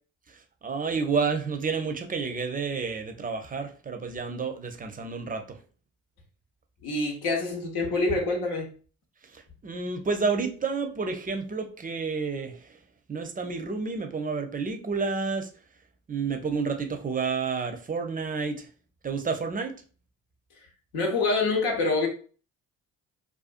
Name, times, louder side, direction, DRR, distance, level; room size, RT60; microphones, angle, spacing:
voice 1, 0.3-5.6 9.2-12.8 13.1-15.5 16.1-18.7 19.0-19.7, right 4 dB, 25° right, 5 dB, 0.5 m, -30 dB
voice 2, 6.8-8.7 20.9-22.1, left 3 dB, 85° left, 1 dB, 0.8 m, -26 dB
2.5 x 2.3 x 2.4 m, 0.39 s
supercardioid pair, 55°, 38 cm